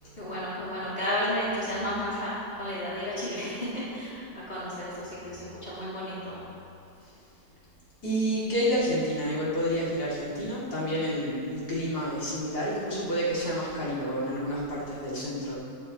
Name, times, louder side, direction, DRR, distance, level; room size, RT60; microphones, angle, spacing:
voice 1, 0.2-6.4, equal, 35° left, -10 dB, 3.7 m, -32 dB
voice 2, 8.0-15.6, equal, 80° left, -8 dB, 3.9 m, -29 dB
17.0 x 13.5 x 3.3 m, 2.5 s
omnidirectional pair, 1.7 m